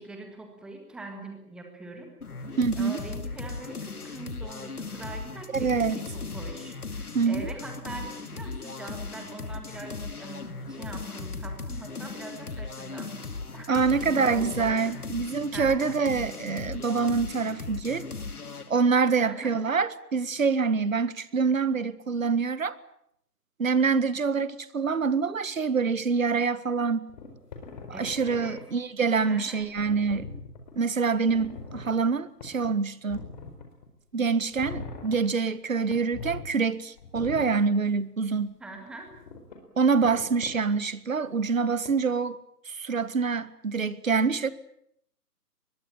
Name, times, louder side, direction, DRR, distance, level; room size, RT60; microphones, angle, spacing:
voice 1, 0.0-2.1 2.8-15.1 15.5-16.0 19.2-19.6 27.9-28.6 29.2-29.6 38.6-39.1, right 2 dB, ahead, 1.8 m, -42 dB
sound 1, 2.2-18.7, left 4 dB, 65° left, 2.5 m, -37 dB
voice 2, 2.6-3.0 5.5-6.0 7.1-7.4 13.7-18.0 18.7-22.8 23.6-27.1 28.0-30.4 30.7-33.2 34.1-38.6 39.8-42.4 42.6-44.5, right 5 dB, 55° right, 1.8 m, -26 dB
sound 2, 27.1-28.6 29.6-30.8 31.2-32.0 32.4-32.7 33.1-33.9 34.5-35.2 35.9-36.4 37.0-37.5 39.0-39.6 40.0-40.5 41.8-41.9, left 4 dB, 25° left, 4.5 m, -41 dB
24.0 x 21.5 x 8.8 m
figure-of-eight pair, 150°, 48 cm